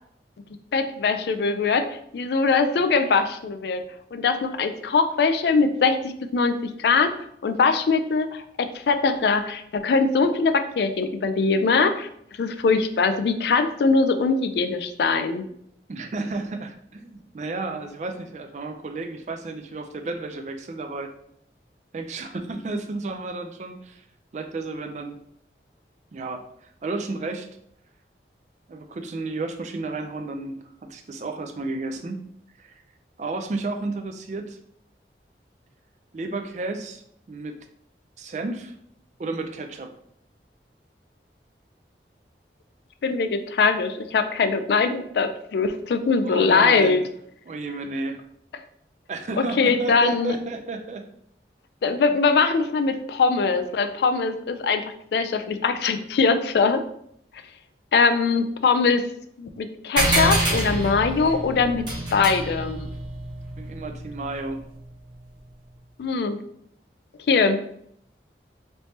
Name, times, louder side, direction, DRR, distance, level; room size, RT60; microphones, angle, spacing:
voice 1, 0.7-3.8 4.1-7.1 7.4-12.1 12.4-15.4 43.0-47.0 49.6-50.4 51.8-54.8 55.1-56.8 57.9-59.1 59.4-62.9 66.0-66.4 67.3-67.6, left 4 dB, 65° left, 9 dB, 0.3 m, -22 dB
voice 2, 15.9-21.1 21.9-24.0 24.3-25.2 26.1-26.4 26.8-27.5 28.7-32.2 32.6-32.8 33.2-34.6 36.1-37.0 37.3-37.6 38.2-38.8 39.2-39.9 46.2-47.1 47.5-48.2 49.1-51.1 63.6-64.6, right 3 dB, 40° right, 6 dB, 0.3 m, -32 dB
sound 1, 60.0-64.9, right 1 dB, 25° right, 0.9 m, -27 dB
3.3 x 3.1 x 2.7 m, 0.70 s
head